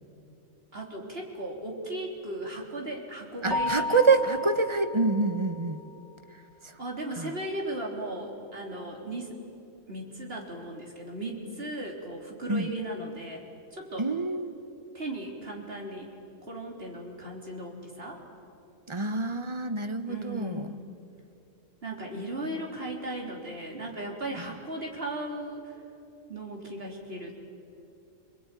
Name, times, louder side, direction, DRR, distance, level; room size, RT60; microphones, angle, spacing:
voice 1, 0.7-4.0 6.8-9.4 9.9-14.1 14.9-18.2 20.1-20.7 21.8-25.7 26.3-27.3, right 1 dB, 45° right, 0 dB, 4.0 m, -37 dB
voice 2, 3.4-5.8 6.6-6.7 7.2-7.3 12.5-12.7 14.0-14.5 18.9-20.7, right 3 dB, 25° right, 9 dB, 1.1 m, -26 dB
Keyboard (musical), 3.5-5.9, left 3 dB, 5° left, 1.0 m, -34 dB
27.0 x 22.0 x 9.3 m, 2.7 s
omnidirectional pair, 1.4 m